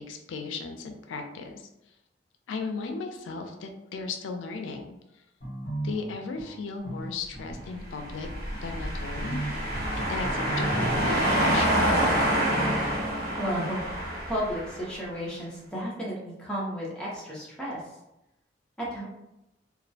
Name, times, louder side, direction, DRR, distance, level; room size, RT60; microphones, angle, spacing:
voice 1, 0.0-1.7 2.5-5.0 5.8-8.3 8.6-9.4 10.1-11.9, left 4 dB, 90° left, 5 dB, 0.3 m, -36 dB
sound 1, 5.4-11.2, right 1 dB, 40° left, 0.9 m, -36 dB
sound 2, 8.1-14.9, right 1 dB, 55° right, 1.0 m, -27 dB
voice 2, 13.4-14.0 14.3-17.8 18.8-19.0, equal, 5° left, -7 dB, 0.6 m, -33 dB
2.3 x 2.0 x 2.6 m, 0.90 s
head